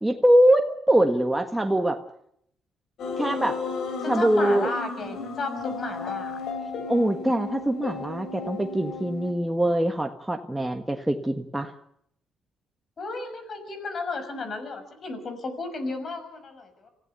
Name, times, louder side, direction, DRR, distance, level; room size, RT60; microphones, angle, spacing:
voice 1, 0.0-2.0 3.2-3.6 4.1-4.7 6.9-11.7, right 1 dB, 10° right, 4 dB, 1.5 m, -23 dB
sound 1, 3.0-9.3, left 4 dB, 75° left, 4.1 m, -34 dB
voice 2, 4.0-6.4 13.0-16.9, left 3 dB, 45° left, 9 dB, 6.1 m, -33 dB
26.5 x 15.5 x 7.0 m, 0.71 s
cardioid pair, 90°, 0 cm